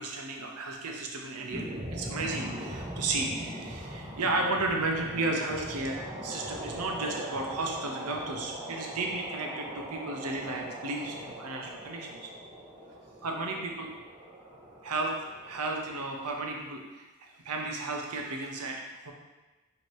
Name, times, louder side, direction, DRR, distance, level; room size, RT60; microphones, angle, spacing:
voice 1, 0.0-6.0 6.2-12.3 13.2-13.9 14.8-15.1 15.4-17.1 17.4-18.8 19.0-19.1, right 2 dB, 80° right, 1 dB, 0.6 m, -33 dB
sound 1, 1.5-16.6, right 1 dB, 15° right, 0.5 m, -41 dB
3.1 x 2.8 x 4.3 m, 1.2 s
head